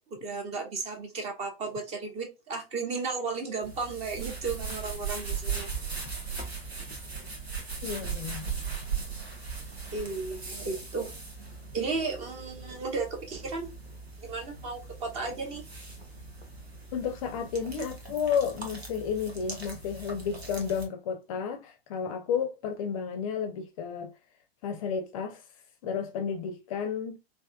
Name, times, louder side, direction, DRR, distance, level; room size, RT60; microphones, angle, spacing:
voice 1, 0.1-5.7 9.9-11.1 11.7-13.7 14.2-15.7, right 4 dB, 20° right, 0.6 m, -34 dB
sound 1, 3.6-20.9, right 5 dB, 85° right, 0.9 m, -39 dB
voice 2, 7.8-8.5 16.9-24.1 24.6-25.4 25.8-27.2, left 7 dB, 35° left, 0.5 m, -32 dB
3.3 x 2.5 x 2.3 m
figure-of-eight pair, 100°, 31 cm